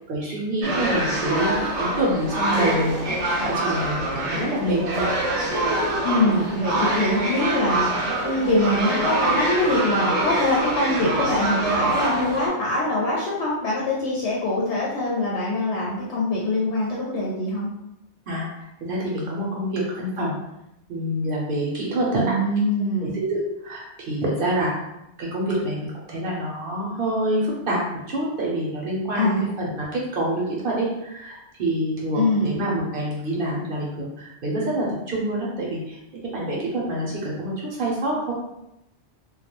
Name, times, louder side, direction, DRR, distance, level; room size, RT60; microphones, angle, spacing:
voice 1, 0.1-3.2 3.4-5.1 18.3-20.3 20.9-22.4 23.0-24.8 25.2-38.3, right 1 dB, 60° right, -4 dB, 0.7 m, -26 dB
sound 1, 0.6-12.5, right 2 dB, 85° right, 0.9 m, -25 dB
voice 2, 6.0-17.7 22.1-23.2 29.1-29.5 32.2-32.5, left 1 dB, 75° left, -5 dB, 0.9 m, -23 dB
2.2 x 2.1 x 2.8 m, 0.86 s
omnidirectional pair, 1.2 m